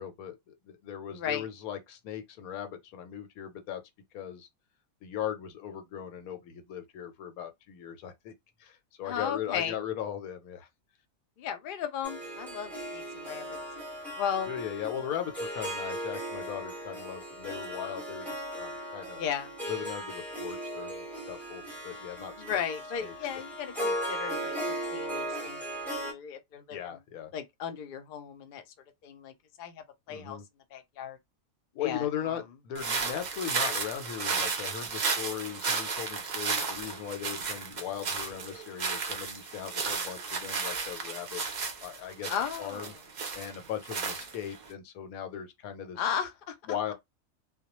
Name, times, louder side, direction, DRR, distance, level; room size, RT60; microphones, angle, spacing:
voice 1, 0.0-3.8 4.1-4.5 5.0-8.3 8.6-10.7 14.5-19.2 19.7-22.6 23.0-23.1 26.7-27.3 30.1-30.4 31.7-41.4 41.8-42.3 42.6-42.9 43.3-46.0 46.7-46.9, left 9 dB, 85° left, 1.1 m, -38 dB
voice 2, 1.1-1.5 9.0-9.8 11.4-13.6 14.1-14.5 19.1-19.5 22.4-26.8 27.3-28.6 29.0-30.4 30.7-31.2 31.8-32.4 42.3-43.0 46.0-46.6, left 8 dB, 65° left, 0.5 m, -35 dB
Harp, 12.0-26.1, right 1 dB, ahead, 0.7 m, -37 dB
sound 1, 32.7-44.7, right 5 dB, 60° right, 0.4 m, -33 dB
2.3 x 2.1 x 2.9 m
omnidirectional pair, 1.5 m